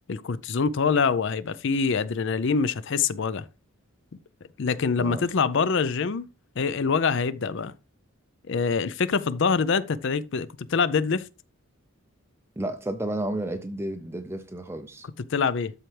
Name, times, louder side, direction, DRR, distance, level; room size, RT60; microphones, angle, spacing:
voice 1, 0.1-3.5 4.6-6.3 6.6-7.7 8.5-11.3 15.2-15.7, left 5 dB, 55° left, 0.5 m, -25 dB
voice 2, 5.0-5.3 12.6-15.1, right 1 dB, 10° right, 0.5 m, -32 dB
13.0 x 4.5 x 3.3 m
head